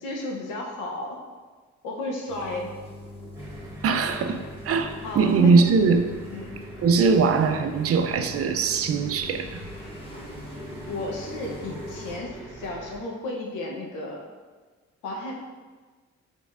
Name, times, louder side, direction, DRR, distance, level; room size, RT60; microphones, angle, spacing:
voice 1, 0.0-1.2 1.8-2.7 5.0-5.6 6.3-6.5 10.8-14.2 15.0-15.3, left 2 dB, 90° left, -1 dB, 0.9 m, -33 dB
sound 1, 2.3-12.2, left 1 dB, 20° left, 0.8 m, -42 dB
sound 2, 3.3-13.0, right 1 dB, 10° right, 1.2 m, -43 dB
voice 2, 3.8-6.0 6.8-9.6, right 4 dB, 50° right, 7 dB, 0.4 m, -21 dB
5.1 x 3.5 x 2.5 m, 1.4 s
cardioid pair, 90°, 30 cm